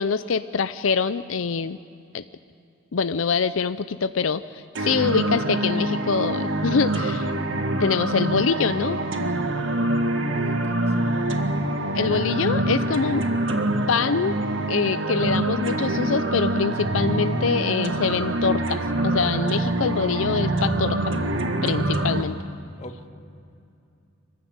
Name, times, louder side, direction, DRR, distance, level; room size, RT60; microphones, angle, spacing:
voice 1, 0.0-1.8 2.1-2.2 2.9-7.3 7.7-9.0 11.9-13.3 13.9-14.3 14.7-21.2 21.6-22.4, left 5 dB, 85° left, 12 dB, 0.5 m, -24 dB
sound 1, 4.8-22.2, right 1 dB, 70° right, 1.7 m, -25 dB
voice 2, 10.3-10.9 22.8-23.1, left 1 dB, 35° left, 5 dB, 1.6 m, -41 dB
25.0 x 15.5 x 9.6 m, 2.5 s
head